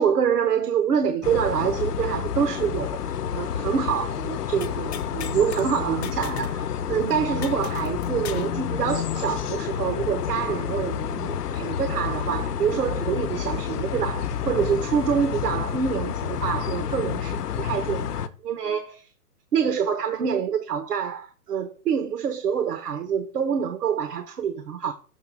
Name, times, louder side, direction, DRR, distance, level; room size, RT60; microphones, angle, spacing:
voice 1, 0.0-19.0 19.5-24.9, right 7 dB, 80° right, 1.0 m, -26 dB
sound 1, 1.2-18.3, left 8 dB, 80° left, 0.7 m, -29 dB
sound 2, 4.6-5.6 6.0-6.6 6.9-7.0 7.4-8.6, left 9 dB, 45° left, 0.7 m, -38 dB
6.8 x 3.3 x 5.9 m
hypercardioid pair, 145°, 46 cm